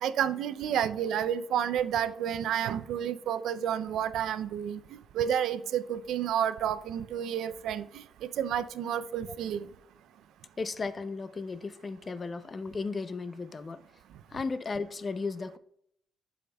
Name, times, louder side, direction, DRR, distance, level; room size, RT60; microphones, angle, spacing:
voice 1, 0.0-4.8 5.1-7.8 8.2-9.7, right 9 dB, 80° right, 0.4 m, -30 dB
voice 2, 10.6-13.8 14.3-15.6, left 4 dB, 35° left, 0.4 m, -35 dB
12.0 x 4.9 x 2.2 m
cardioid pair, 90°, 0 cm